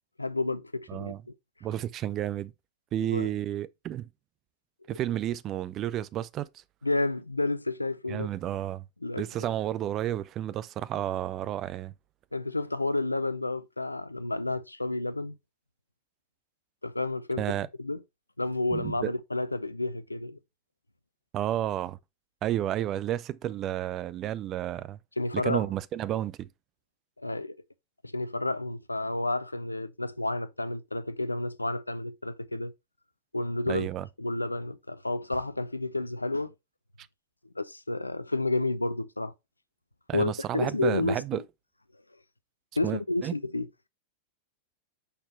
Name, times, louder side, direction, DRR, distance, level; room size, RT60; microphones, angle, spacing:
voice 1, 0.2-1.1 2.9-3.3 6.8-8.3 9.0-9.3 12.3-15.4 16.8-17.5 17.8-18.0 18.4-20.4 25.2-25.6 27.2-27.6 28.0-32.7 33.3-33.9 34.2-36.5 37.6-39.3 40.1-41.4 42.8-43.7, left 2 dB, 85° left, 0.4 m, -30 dB
voice 2, 0.9-1.2 1.6-2.5 2.9-4.1 4.9-6.5 8.1-8.8 9.2-11.9 17.4-17.7 18.7-19.1 21.3-22.0 22.4-25.0 25.3-26.5 33.7-34.0 40.1-41.4 42.8-43.3, right 12 dB, 30° right, 0.5 m, -31 dB
5.6 x 4.3 x 4.5 m
figure-of-eight pair, 90°, 0 cm